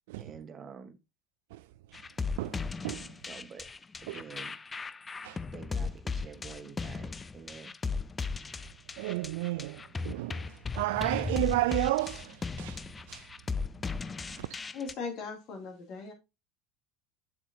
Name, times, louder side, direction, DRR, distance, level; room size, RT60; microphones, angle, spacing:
voice 1, 0.2-1.0 3.3-3.7 4.0-4.5 5.5-7.7, right 6 dB, 35° right, 1.3 m, -47 dB
sound 1, 1.9-14.9, left 4 dB, 20° left, 0.4 m, -37 dB
voice 2, 9.0-12.8 13.1-13.3 14.4-14.5, right 18 dB, 65° right, 0.3 m, -32 dB
voice 3, 14.7-16.1, left 5 dB, 50° left, 2.7 m, -38 dB
7.6 x 7.3 x 2.7 m
hypercardioid pair, 75°, 0 cm